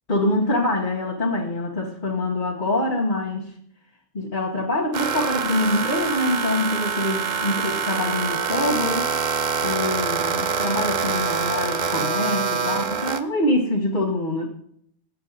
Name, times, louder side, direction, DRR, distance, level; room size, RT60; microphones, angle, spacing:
voice 1, 0.1-3.5 4.1-9.1 9.6-14.5, left 2 dB, 40° left, -2 dB, 1.8 m, -25 dB
sound 1, 4.9-13.2, right 6 dB, 40° right, 0.8 m, -25 dB
20.5 x 8.5 x 4.1 m, 0.67 s
omnidirectional pair, 1.3 m